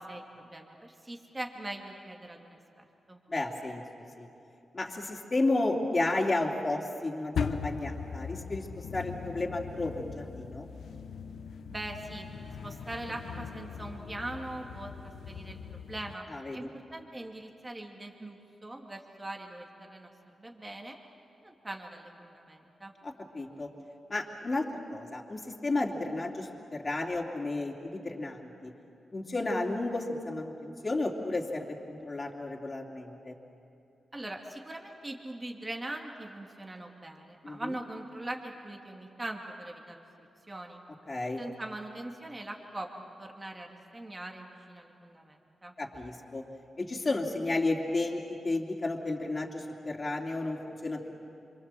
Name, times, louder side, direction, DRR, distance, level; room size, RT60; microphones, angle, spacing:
voice 1, 0.1-3.2 11.7-12.3 12.6-21.0 21.4-22.9 34.1-40.0 40.5-40.8 41.4-45.8, right 1 dB, 25° right, 1 dB, 2.5 m, -42 dB
voice 2, 3.3-3.8 4.2-4.3 4.7-8.7 8.9-10.7 16.3-16.7 23.0-23.7 24.1-28.7 29.1-33.3 37.4-37.6 41.1-41.4 45.8-46.4 46.8-51.2, left 2 dB, 35° left, -1 dB, 2.8 m, -32 dB
sound 1, 7.3-16.1, left 6 dB, 85° left, 1.0 m, -39 dB
27.0 x 24.0 x 7.7 m, 2.8 s
cardioid pair, 65°, 0 cm